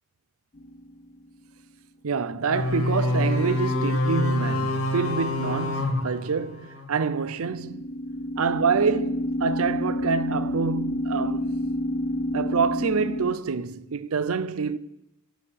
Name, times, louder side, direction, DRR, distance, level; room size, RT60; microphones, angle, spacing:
sound 1, 0.6-1.1 7.2-13.4, left 1 dB, 35° left, 0.5 m, -29 dB
voice 1, 2.0-7.9 8.4-11.6 12.3-14.8, right 5 dB, 75° right, 0.6 m, -27 dB
sound 2, 2.5-7.0, left 2 dB, 80° left, 2.1 m, -26 dB
16.5 x 5.5 x 8.5 m
head